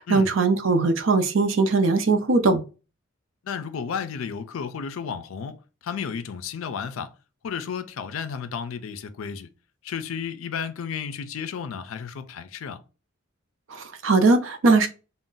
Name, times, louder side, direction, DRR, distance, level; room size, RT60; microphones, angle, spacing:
voice 1, 0.0-2.6 13.7-14.9, right 3 dB, 70° right, 0.5 m, -20 dB
voice 2, 3.4-5.6 5.8-7.1 7.4-9.5 9.8-12.8, left 6 dB, 80° left, 0.4 m, -32 dB
2.5 x 2.1 x 3.7 m
head